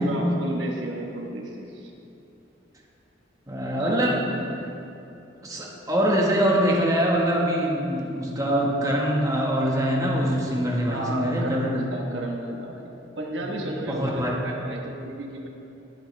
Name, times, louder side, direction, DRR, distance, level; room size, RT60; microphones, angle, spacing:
voice 1, 0.0-1.9 3.8-4.7 10.8-15.5, right 1 dB, 80° right, 1 dB, 1.2 m, -33 dB
voice 2, 3.5-4.2 5.4-11.7 13.8-14.4, equal, 20° right, -2 dB, 1.5 m, -24 dB
19.5 x 7.4 x 3.4 m, 2.8 s
head